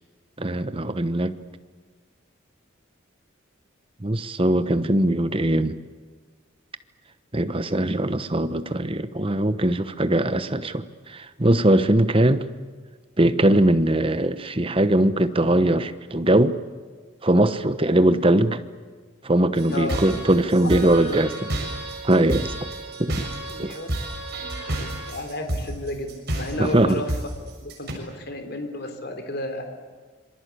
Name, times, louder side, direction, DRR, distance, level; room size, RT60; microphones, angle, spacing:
voice 1, 0.4-1.3 4.0-5.8 7.3-12.4 13.2-16.6 17.2-18.6 19.2-21.5 22.0-22.5 23.0-23.2 23.6-23.8 26.6-27.0, right 1 dB, 25° right, 12 dB, 1.1 m, -21 dB
sound 1, 19.5-27.9, right 1 dB, 50° right, 7.1 m, -30 dB
voice 2, 20.6-21.3 23.4-23.9 24.3-27.2 27.6-29.7, left 1 dB, 50° left, 6 dB, 3.7 m, -33 dB
26.5 x 24.5 x 8.5 m, 1.4 s
head